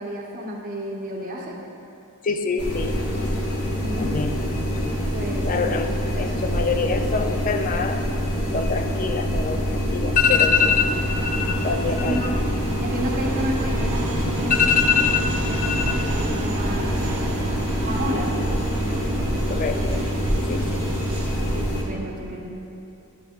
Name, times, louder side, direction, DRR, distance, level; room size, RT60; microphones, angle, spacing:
voice 1, 0.0-1.6 3.8-4.2 5.1-6.4 12.0-12.4 12.8-17.1 17.8-18.5 21.5-22.5, right 1 dB, 40° right, -2 dB, 0.9 m, -32 dB
voice 2, 2.2-3.0 4.0-4.3 5.4-5.9 6.2-8.0 8.5-9.6 9.9-11.0 11.2-12.3 14.5-15.3 15.6-16.0 19.5-20.0 20.5-20.8, left 6 dB, 40° left, 6 dB, 0.4 m, -24 dB
sound 1, 2.6-21.8, equal, 80° left, 1.2 m, -25 dB
sound 2, 10.1-21.6, right 1 dB, 75° right, 0.9 m, -32 dB
11.0 x 6.3 x 2.4 m, 2.7 s
head